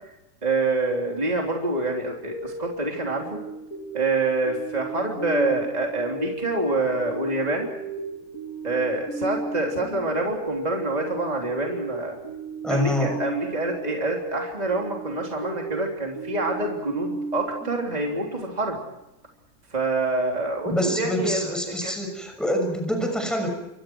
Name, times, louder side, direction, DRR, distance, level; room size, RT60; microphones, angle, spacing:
voice 1, 0.4-3.4 3.9-7.7 8.6-12.2 12.7-18.8 19.7-21.9, right 2 dB, 20° right, 0 dB, 3.5 m, -26 dB
sound 1, 2.2-18.6, right 3 dB, 50° left, 8.3 m, -36 dB
voice 2, 12.6-13.2 20.7-23.5, equal, ahead, 4 dB, 6.3 m, -26 dB
28.5 x 26.0 x 4.7 m, 0.90 s
omnidirectional pair, 2.1 m